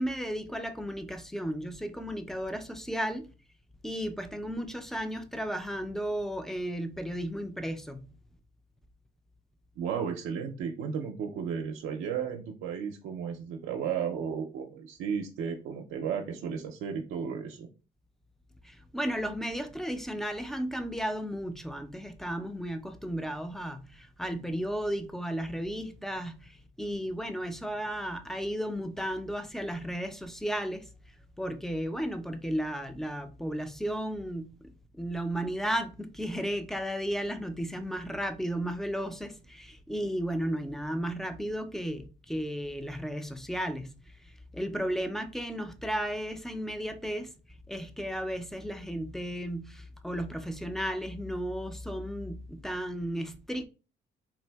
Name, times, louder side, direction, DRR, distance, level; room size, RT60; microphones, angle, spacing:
voice 1, 0.0-3.3 3.8-8.1 18.6-30.9 31.4-34.5 35.0-43.9 44.2-47.3 47.7-53.7, equal, ahead, 0.3 m, -34 dB
voice 2, 9.8-17.7, right 7 dB, 85° right, 0.5 m, -34 dB
3.5 x 2.6 x 2.2 m
cardioid pair, 90°, 20 cm